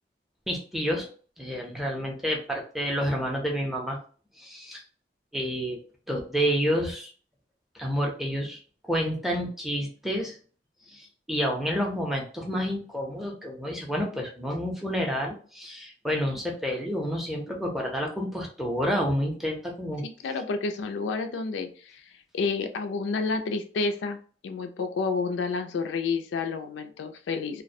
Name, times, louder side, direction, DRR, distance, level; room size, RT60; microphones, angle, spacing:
voice 1, 0.5-1.1 1.4-4.0 4.4-4.8 5.3-5.8 6.1-7.1 7.7-10.3 10.9-20.0, equal, ahead, 0 dB, 0.4 m, -29 dB
voice 2, 20.0-24.2 24.4-27.6, left 4 dB, 85° left, 7 dB, 0.3 m, -30 dB
2.3 x 2.0 x 2.6 m, 0.41 s
head